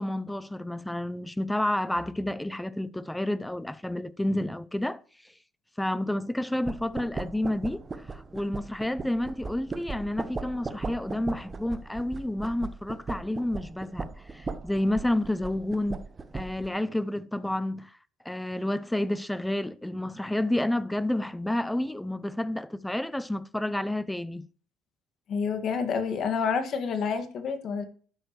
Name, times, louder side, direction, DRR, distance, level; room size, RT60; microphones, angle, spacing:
voice 1, 0.0-5.0 5.8-14.1 14.3-16.0 16.3-17.9 18.2-24.5, left 1 dB, 5° left, 0.6 m, -30 dB
sound 1, 6.6-16.7, right 3 dB, 25° right, 1.1 m, -38 dB
voice 2, 25.3-27.8, left 6 dB, 55° left, 1.9 m, -28 dB
12.5 x 8.9 x 3.2 m
supercardioid pair, 95°, 0 cm